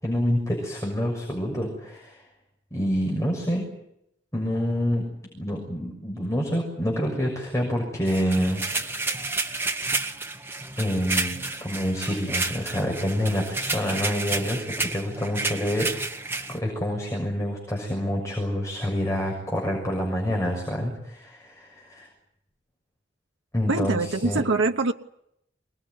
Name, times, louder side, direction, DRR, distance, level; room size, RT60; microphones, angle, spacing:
voice 1, 0.0-2.2 2.7-3.6 4.3-5.0 5.3-8.8 9.7-10.0 10.8-16.2 16.5-22.1 23.5-24.4, equal, 15° left, 6.5 m, -27 dB
sound 1, 8.1-16.6, right 3 dB, 10° right, 1.9 m, -30 dB
voice 2, 23.7-24.9, right 3 dB, 90° right, 1.0 m, -24 dB
26.0 x 20.5 x 9.7 m
head